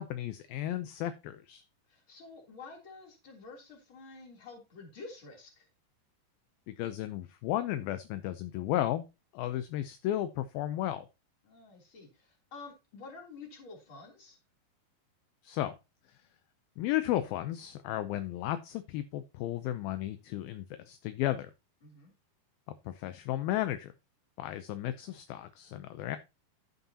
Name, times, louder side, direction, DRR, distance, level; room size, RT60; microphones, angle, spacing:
voice 1, 0.0-1.6 6.7-9.1 9.3-11.1 15.4-15.8 16.8-21.5 22.9-23.9 24.4-26.2, left 13 dB, 75° left, 10 dB, 2.4 m, -34 dB
voice 2, 1.9-5.7 11.4-14.4 21.8-22.1, left 4 dB, 35° left, 0 dB, 3.7 m, -49 dB
11.5 x 9.2 x 2.8 m, 0.26 s
omnidirectional pair, 4.6 m